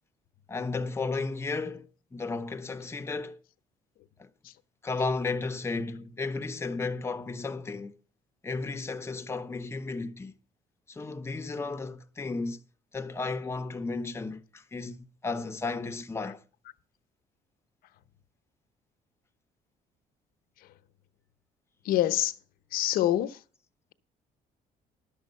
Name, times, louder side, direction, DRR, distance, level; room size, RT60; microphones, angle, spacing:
voice 1, 0.5-3.4 4.2-4.3 4.8-8.0 8.4-10.3 10.9-12.6 12.9-16.4, left 3 dB, 15° left, 1.0 m, -34 dB
voice 2, 21.8-22.3 22.7-23.4, left 13 dB, 70° left, 0.9 m, -25 dB
12.0 x 7.1 x 5.5 m
cardioid pair, 135°, 15 cm